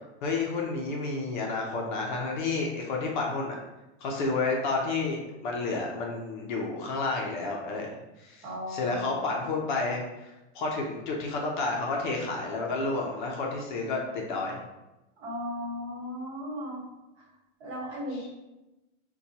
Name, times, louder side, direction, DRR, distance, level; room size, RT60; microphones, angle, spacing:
voice 1, 0.2-3.6 4.0-14.6, left 3 dB, 40° left, -1 dB, 0.4 m, -31 dB
voice 2, 8.4-9.1 15.2-16.8 17.2-17.3 17.6-18.3, left 1 dB, 55° right, -4 dB, 1.4 m, -36 dB
4.1 x 2.2 x 2.7 m, 1.0 s
supercardioid pair, 170°, 38 cm